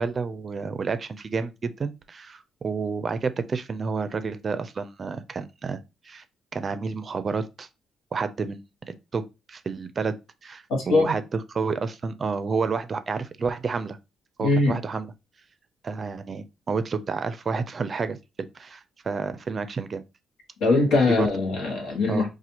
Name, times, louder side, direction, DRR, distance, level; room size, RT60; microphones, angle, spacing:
voice 1, 0.0-5.8 6.0-6.2 6.5-7.7 8.1-8.6 8.9-10.2 10.4-14.0 14.4-15.1 15.8-20.0 21.1-21.3 22.1-22.3, right 4 dB, 40° right, 0.4 m, -30 dB
voice 2, 10.7-11.1 14.4-14.8 20.6-22.3, left 3 dB, 80° left, 1.2 m, -21 dB
4.1 x 2.4 x 2.8 m
cardioid pair, 90°, 0 cm